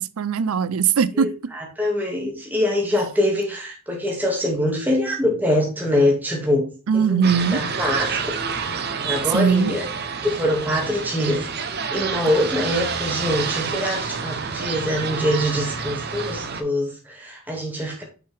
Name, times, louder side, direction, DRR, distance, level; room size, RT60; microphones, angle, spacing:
voice 1, 0.0-1.3 6.9-7.6 9.3-9.7, right 6 dB, 85° right, 0.5 m, -20 dB
voice 2, 1.1-6.7 6.9-7.2 7.5-8.3 9.0-9.9 10.2-11.5 11.9-18.0, left 1 dB, 10° right, 2.2 m, -24 dB
sound 1, 7.2-16.6, right 5 dB, 50° right, 0.9 m, -28 dB
6.7 x 5.6 x 3.4 m
head